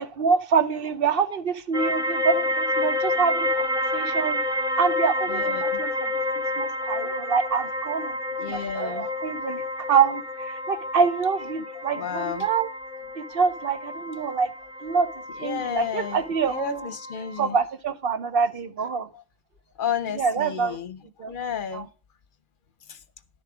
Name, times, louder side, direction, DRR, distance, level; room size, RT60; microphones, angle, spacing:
voice 1, 0.0-4.4 4.8-6.1 6.6-8.2 8.5-9.6 9.9-12.7 13.2-14.5 14.8-15.1 15.4-16.9 17.4-19.1 20.2-20.8 21.2-21.3 21.7-21.8, right 5 dB, 65° right, 0.9 m, -25 dB
sound 1, 1.7-17.4, left 1 dB, 5° right, 0.8 m, -29 dB
voice 2, 5.3-5.8 8.4-9.1 10.7-10.8 11.9-12.5 13.3-13.4 15.3-17.6 19.1-19.2 19.8-21.9 22.9-23.0, left 8 dB, 60° left, 0.8 m, -32 dB
11.0 x 6.9 x 4.8 m
omnidirectional pair, 1.1 m